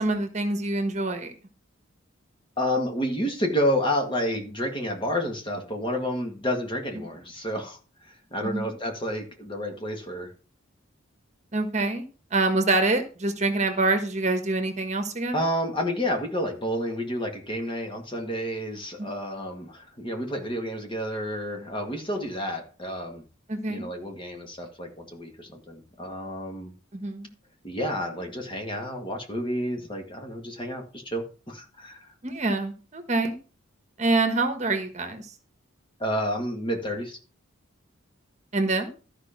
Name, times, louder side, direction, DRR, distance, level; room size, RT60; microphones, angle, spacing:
voice 1, 0.0-1.3 8.4-8.7 11.5-12.0 12.3-15.4 19.0-19.1 23.5-23.9 26.9-27.3 32.2-33.4 34.0-35.3 38.5-38.9, right 2 dB, 35° right, 7 dB, 1.3 m, -26 dB
voice 2, 2.6-7.8 8.0-10.3 15.3-23.2 23.7-26.7 27.6-32.1 36.0-37.2, equal, 25° left, 3 dB, 1.8 m, -30 dB
13.0 x 5.2 x 5.8 m, 0.36 s
head